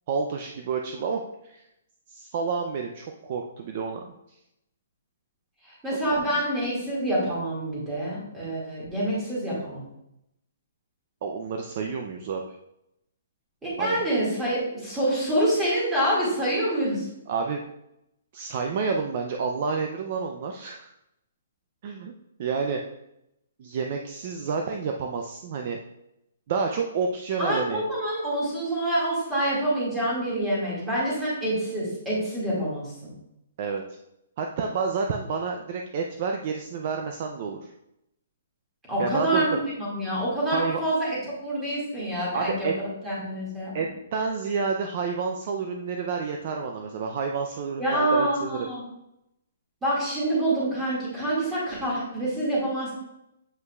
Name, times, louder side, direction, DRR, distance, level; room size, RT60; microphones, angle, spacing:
voice 1, 0.1-1.6 2.1-4.0 6.0-6.1 11.2-12.4 13.8-14.0 17.3-17.6 18.3-20.9 21.8-22.1 22.4-22.8 23.6-25.8 26.5-27.8 33.6-34.0 34.4-37.7 39.0-39.5 40.5-40.8 42.3-42.7 43.7-43.9 44.1-48.7, right 5 dB, 35° right, 3 dB, 0.4 m, -29 dB
voice 2, 5.6-9.9 13.6-17.1 27.4-33.1 38.9-43.7 47.8-48.8 49.8-52.9, right 1 dB, 5° right, -8 dB, 2.0 m, -27 dB
7.8 x 5.4 x 2.3 m, 0.83 s
hypercardioid pair, 175°, 0 cm